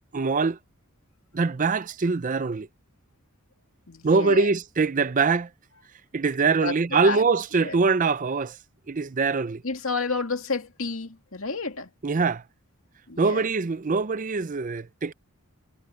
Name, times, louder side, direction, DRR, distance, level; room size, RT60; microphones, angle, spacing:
voice 1, 0.1-0.6 1.3-2.7 4.0-5.5 6.1-8.6 8.9-9.6 12.0-12.4 13.2-15.1, right 4 dB, 35° right, 0.5 m, -23 dB
voice 2, 3.9-4.5 6.4-7.2 7.6-7.8 9.6-11.9 13.1-13.4, left 4 dB, 70° left, 2.5 m, -31 dB
head